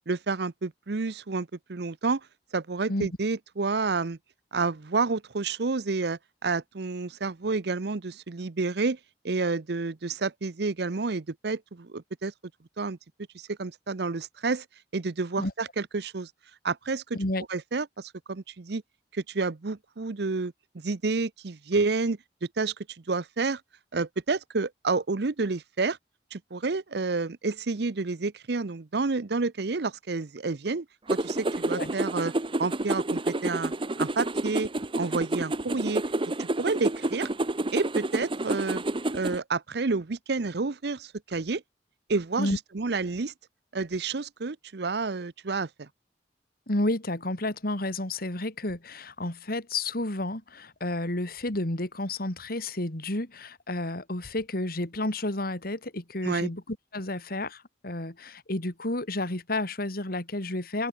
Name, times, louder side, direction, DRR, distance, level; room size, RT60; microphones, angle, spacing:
voice 1, 0.1-2.2 2.5-4.2 4.5-9.0 9.2-12.3 12.8-13.0 13.3-14.6 14.9-16.3 16.6-17.2 17.5-18.8 19.1-22.7 23.1-23.6 23.9-26.0 26.3-32.3 32.6-33.7 34.0-36.0 36.4-37.3 37.7-38.8 39.1-41.6 42.1-43.3 43.7-45.9 56.2-56.5, right 3 dB, 70° right, 0.8 m, -29 dB
voice 2, 17.1-17.4 31.8-31.9 42.4-42.6 46.7-60.9, left 1 dB, 55° left, 3.1 m, -31 dB
sound 1, 31.1-39.4, right 2 dB, 30° right, 1.1 m, -29 dB
head